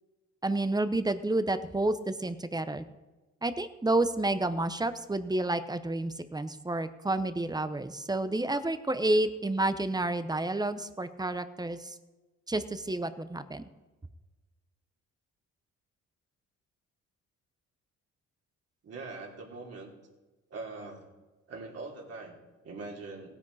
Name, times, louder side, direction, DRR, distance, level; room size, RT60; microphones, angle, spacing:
voice 1, 0.4-2.8 3.4-11.9 12.5-13.6, right 2 dB, 15° right, 12 dB, 0.8 m, -30 dB
voice 2, 18.8-19.9 20.5-21.1 21.5-23.3, right 3 dB, 55° right, -1 dB, 3.4 m, -42 dB
17.0 x 9.9 x 4.2 m, 1.2 s
cardioid pair, 90°, 30 cm